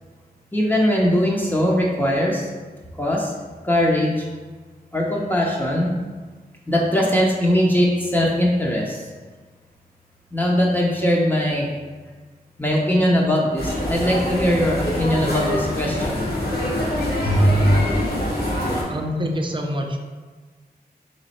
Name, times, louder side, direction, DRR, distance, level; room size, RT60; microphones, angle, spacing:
voice 1, 0.5-2.4 3.0-3.3 3.6-4.2 4.9-5.9 6.7-9.0 10.3-11.7 12.6-16.4, equal, 10° left, -4 dB, 0.6 m, -20 dB
sound 1, 13.6-18.8, equal, 75° left, 1.1 m, -22 dB
voice 2, 18.3-20.0, equal, 30° right, 2 dB, 0.5 m, -27 dB
3.6 x 3.1 x 4.2 m, 1.4 s
wide cardioid pair, 90°, 16 cm